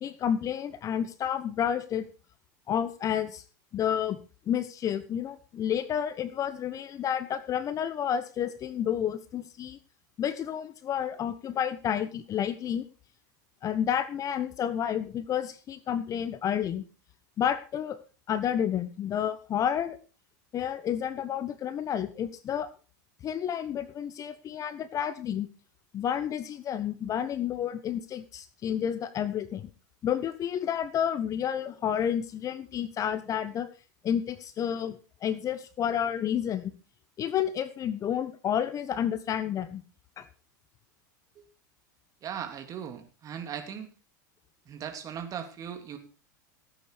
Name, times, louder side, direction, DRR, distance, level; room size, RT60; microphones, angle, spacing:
voice 1, 0.0-2.1 2.7-3.4 3.7-4.2 4.5-9.8 10.2-12.8 13.6-16.8 17.4-18.0 18.3-20.0 20.5-22.7 23.2-25.5 25.9-29.7 30.0-33.7 34.0-36.7 37.2-39.8 40.2-40.3, left 9 dB, 30° left, 14 dB, 1.1 m, -30 dB
voice 2, 42.2-43.9 44.7-46.0, right 8 dB, 35° right, 6 dB, 3.1 m, -38 dB
16.5 x 9.0 x 5.0 m, 0.34 s
hypercardioid pair, 110°, 10 cm